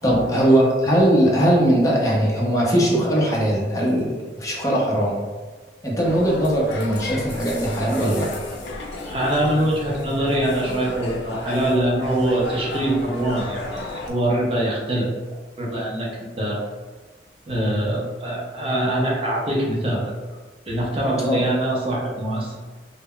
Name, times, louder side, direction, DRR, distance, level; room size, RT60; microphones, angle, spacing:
voice 1, 0.0-5.2 5.8-8.4 21.3-21.5, right 1 dB, 20° left, -4 dB, 0.6 m, -20 dB
sound 1, 6.0-14.1, left 2 dB, 70° left, 0.4 m, -34 dB
voice 2, 9.1-15.1 15.6-16.1 16.4-16.6 17.5-20.1 20.7-22.6, right 1 dB, 30° right, -4 dB, 0.5 m, -23 dB
2.1 x 2.0 x 3.6 m, 1.3 s
head